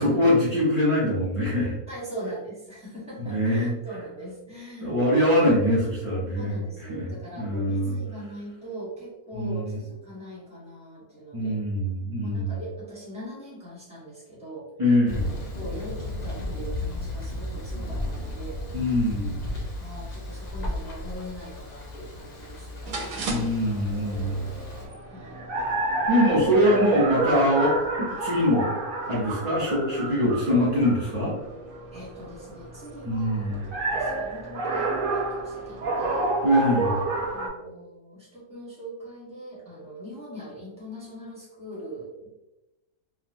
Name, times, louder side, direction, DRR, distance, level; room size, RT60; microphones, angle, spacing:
voice 1, 0.0-1.7 3.2-3.7 4.8-6.5 6.9-8.0 9.3-9.8 11.3-12.6 14.8-15.3 18.7-19.4 23.3-24.5 26.1-28.7 29.1-31.3 33.0-33.6 36.4-37.0, equal, 40° right, -8 dB, 0.4 m, -23 dB
voice 2, 1.9-5.0 6.4-11.6 12.2-14.7 15.5-18.9 19.8-23.5 24.7-25.4 31.9-33.5 33.9-36.3 37.3-42.3, right 1 dB, 5° right, -7 dB, 1.0 m, -41 dB
Thunder, 15.1-24.9, left 1 dB, 80° left, 0.4 m, -34 dB
sound 1, 22.9-37.5, right 2 dB, 65° right, 0.9 m, -30 dB
3.1 x 2.3 x 2.5 m, 0.96 s
omnidirectional pair, 1.6 m